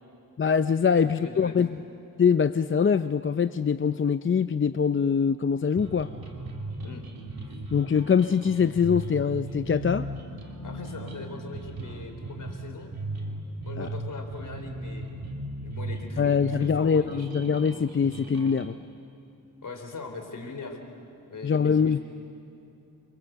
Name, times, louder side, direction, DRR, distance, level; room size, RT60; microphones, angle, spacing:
voice 1, 0.4-1.8 2.2-6.1 7.7-10.1 13.8-13.9 16.2-18.8 21.4-22.0, left 6 dB, 35° left, 11 dB, 0.5 m, -23 dB
voice 2, 1.0-1.6 6.8-7.0 7.4-7.6 10.6-12.9 13.6-15.1 15.6-17.3 19.6-20.8 21.3-22.0, left 4 dB, 60° left, 5 dB, 4.0 m, -41 dB
sound 1, 5.8-18.7, right 2 dB, 85° right, 3.3 m, -37 dB
28.5 x 25.0 x 8.2 m, 2.9 s
wide cardioid pair, 90°, 35 cm